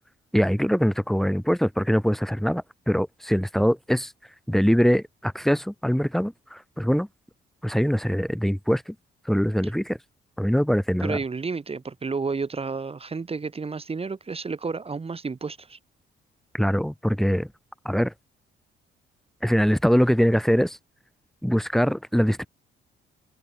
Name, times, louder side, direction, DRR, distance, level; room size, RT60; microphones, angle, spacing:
voice 1, 0.3-4.1 4.5-7.1 7.6-8.9 9.2-10.0 10.4-11.2 16.5-17.5 17.8-18.1 19.4-20.8 21.4-22.5, equal, ahead, 2.9 m, -23 dB
voice 2, 11.0-15.8, right 4 dB, 30° right, 2.5 m, -31 dB
cardioid pair, 90°, 20 cm